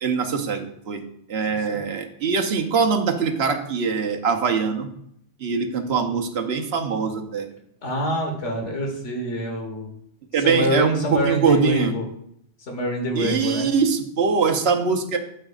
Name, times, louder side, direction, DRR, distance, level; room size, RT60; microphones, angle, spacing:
voice 1, 0.0-1.0 1.3-4.9 5.4-7.5 10.3-11.9 13.1-15.2, right 5 dB, 60° right, 5 dB, 1.1 m, -22 dB
voice 2, 7.8-9.9 10.4-12.0 12.6-13.7, left 1 dB, 70° left, 2 dB, 1.8 m, -26 dB
8.9 x 7.8 x 2.4 m, 0.72 s
omnidirectional pair, 1.3 m